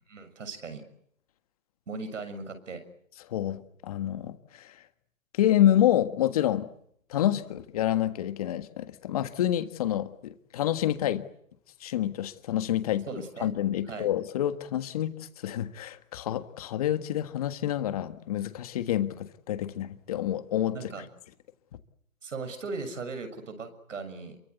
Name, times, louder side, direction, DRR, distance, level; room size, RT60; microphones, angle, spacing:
voice 1, 0.1-0.8 1.9-2.8 13.1-13.5 13.9-14.1 20.7-21.1 22.2-24.4, right 4 dB, 60° right, 9 dB, 6.9 m, -38 dB
voice 2, 3.3-4.8 5.3-6.7 7.1-11.2 11.8-13.0 13.4-20.8, left 12 dB, 25° left, 11 dB, 1.5 m, -28 dB
28.0 x 23.5 x 8.2 m, 0.70 s
hypercardioid pair, 155°, 42 cm